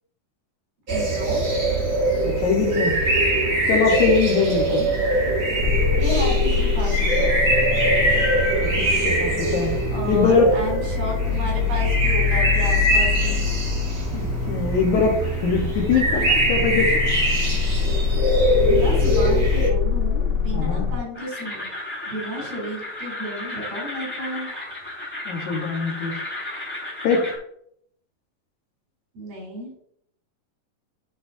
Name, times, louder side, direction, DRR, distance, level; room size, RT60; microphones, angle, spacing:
sound 1, 0.9-19.7, right 1 dB, 40° right, 1.2 m, -23 dB
voice 1, 0.9-1.4 4.5-5.0 5.9-7.4 9.9-13.5 18.6-21.7 22.1-24.5 29.2-29.7, equal, 80° right, -3 dB, 5.1 m, -32 dB
voice 2, 2.2-3.0 3.7-4.8 8.6-8.8 9.2-9.8 10.1-10.5 14.1-17.0 20.5-20.9 25.3-26.1 27.0-27.3, left 5 dB, 65° left, 1 dB, 2.4 m, -22 dB
sound 2, 5.6-21.0, left 6 dB, 20° right, 1.9 m, -24 dB
sound 3, 21.1-27.4, left 2 dB, 5° left, 2.3 m, -34 dB
12.5 x 4.2 x 2.7 m, 0.69 s
omnidirectional pair, 3.9 m